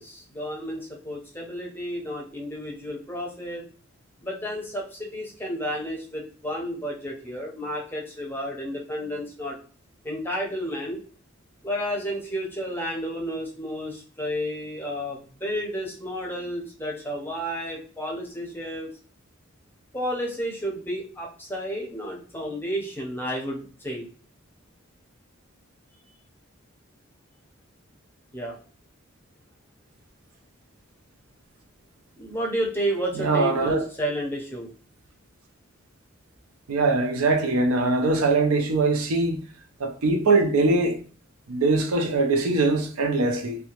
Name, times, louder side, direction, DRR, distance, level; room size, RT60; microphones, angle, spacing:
voice 1, 0.0-3.7 4.2-9.6 10.0-11.0 11.6-18.9 19.9-24.1 28.3-28.6 32.2-34.7, equal, 10° left, 0.6 m, -31 dB
voice 2, 33.2-33.8 36.7-39.4 39.8-41.0 41.5-43.6, right 3 dB, 85° right, 0.5 m, -22 dB
2.7 x 2.2 x 2.8 m
head